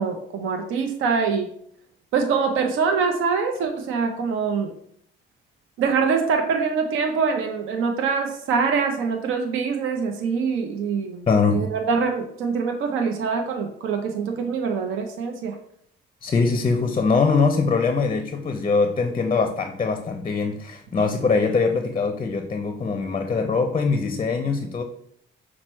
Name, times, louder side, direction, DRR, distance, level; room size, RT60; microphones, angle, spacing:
voice 1, 0.0-1.5 2.1-4.7 5.8-15.6, right 5 dB, 85° right, 4 dB, 0.6 m, -24 dB
voice 2, 11.3-11.7 16.2-24.8, left 4 dB, 25° left, 6 dB, 0.5 m, -22 dB
5.8 x 2.1 x 4.3 m, 0.68 s
cardioid pair, 90°, 20 cm